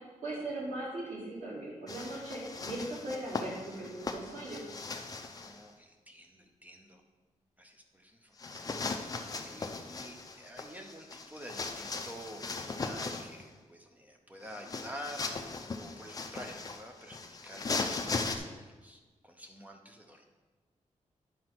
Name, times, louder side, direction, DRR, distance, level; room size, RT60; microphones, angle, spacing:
voice 1, 0.2-4.6, right 2 dB, 85° right, -8 dB, 3.0 m, -39 dB
sound 1, 1.9-5.6 8.4-13.4 14.4-18.4, left 3 dB, 30° left, 0.5 m, -38 dB
voice 2, 5.1-7.0 7.6-20.3, equal, 10° right, 3 dB, 0.7 m, -49 dB
9.6 x 4.2 x 6.0 m, 1.3 s
wide cardioid pair, 175°, 13 cm